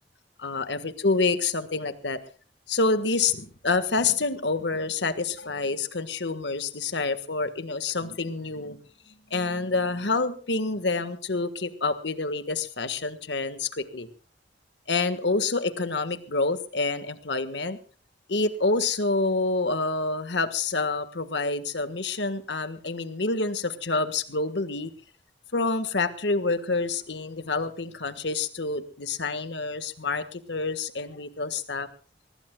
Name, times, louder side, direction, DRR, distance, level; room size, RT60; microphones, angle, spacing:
voice 1, 0.4-2.2 2.7-8.8 9.3-14.1 14.9-17.8 18.3-24.9 25.5-31.9, left 3 dB, 80° left, 11 dB, 1.5 m, -27 dB
24.0 x 20.0 x 2.3 m, 0.41 s
head